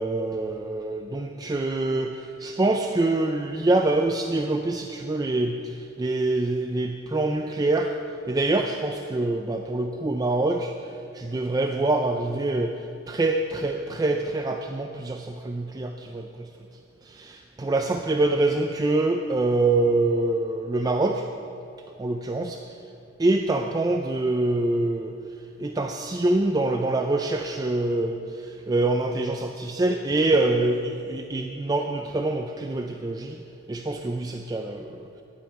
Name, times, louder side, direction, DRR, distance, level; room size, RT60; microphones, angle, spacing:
voice 1, 0.0-5.6 6.0-7.9 8.3-10.7 11.1-12.7 13.1-16.3 17.2-17.4 17.7-21.3 22.0-22.6 23.2-25.1 25.6-28.2 28.7-33.4 33.7-34.9, right 2 dB, 20° right, 4 dB, 0.3 m, -25 dB
10.5 x 5.7 x 8.2 m, 2.5 s
head